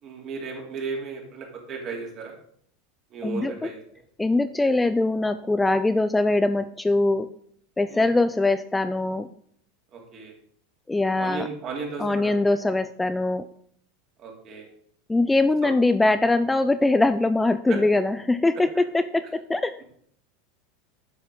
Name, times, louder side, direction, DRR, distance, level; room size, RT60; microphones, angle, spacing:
voice 1, 0.0-2.3 3.1-3.8 7.9-8.1 9.9-10.3 11.2-12.4 14.2-14.7 15.6-15.7 17.7-17.8 18.5-18.6, right 4 dB, 40° right, 0 dB, 2.9 m, -35 dB
voice 2, 3.2-3.7 4.2-7.3 7.8-9.3 10.9-11.5 12.0-13.5 15.1-19.8, left 2 dB, 10° left, 11 dB, 0.4 m, -22 dB
11.5 x 7.1 x 3.9 m, 0.64 s
figure-of-eight pair, 80°, 0 cm